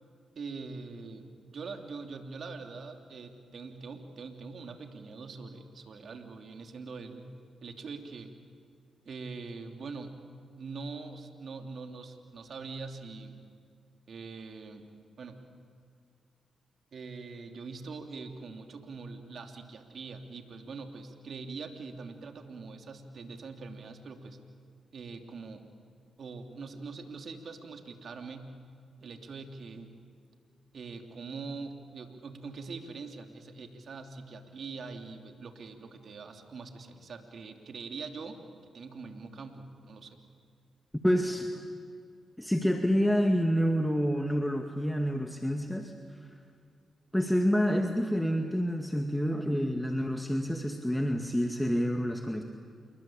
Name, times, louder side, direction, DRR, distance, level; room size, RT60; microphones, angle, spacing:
voice 1, 0.3-7.3 7.6-8.3 9.0-10.2 10.5-13.4 14.1-14.8 15.2-15.4 16.9-24.4 24.9-25.6 26.2-28.6 29.0-30.0 30.7-38.4 38.7-40.3, right 4 dB, 65° right, 5 dB, 3.0 m, -43 dB
voice 2, 41.0-41.6 42.4-45.9 47.1-52.4, equal, 5° left, 4 dB, 2.1 m, -28 dB
28.0 x 22.5 x 8.8 m, 2.3 s
supercardioid pair, 40°, 0 cm